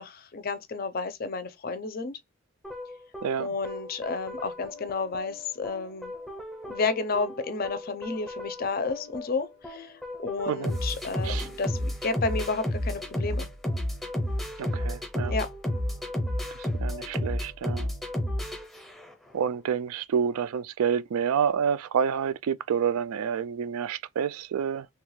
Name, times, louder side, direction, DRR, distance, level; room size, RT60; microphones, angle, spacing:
voice 1, 0.0-2.2 3.4-6.1 6.7-9.9 10.2-13.5 15.3-15.5, left 4 dB, 40° left, 0.5 m, -31 dB
sound 1, 2.6-19.3, left 1 dB, ahead, 0.6 m, -33 dB
voice 2, 14.6-15.3 16.5-17.9 19.3-24.9, right 7 dB, 80° right, 0.3 m, -28 dB
3.2 x 2.3 x 3.1 m
head